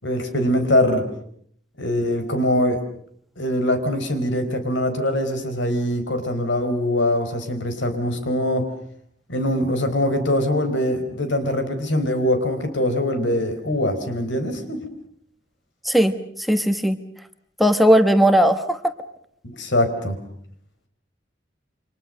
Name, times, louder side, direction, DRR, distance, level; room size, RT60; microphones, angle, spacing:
voice 1, 0.0-1.1 1.8-2.8 3.4-8.7 9.3-14.8 19.4-20.2, left 1 dB, 85° left, 8 dB, 4.4 m, -22 dB
voice 2, 16.5-17.0 17.6-18.8, equal, ahead, 8 dB, 1.2 m, -17 dB
29.0 x 25.5 x 6.5 m, 0.64 s
head